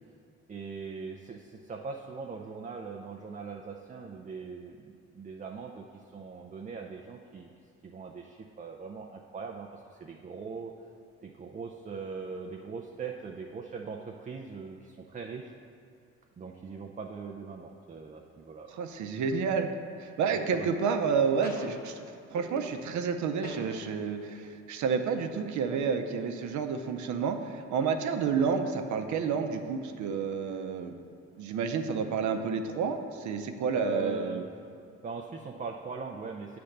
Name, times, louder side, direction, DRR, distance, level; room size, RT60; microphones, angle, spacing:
voice 1, 0.5-7.5 7.8-10.7 11.2-15.5 16.4-18.7 20.5-20.7 33.8-34.4 35.0-36.6, right 4 dB, 25° right, 2 dB, 0.5 m, -40 dB
voice 2, 18.7-19.7 20.0-22.0 22.3-30.9 31.4-34.4, right 6 dB, 75° right, 6 dB, 0.7 m, -30 dB
natural delay percussion, 19.3-19.7 20.5-21.1 21.4-23.1 23.4-24.2, left 2 dB, 30° left, 1.1 m, -46 dB
8.5 x 3.4 x 6.5 m, 2.5 s
cardioid pair, 90°, 30 cm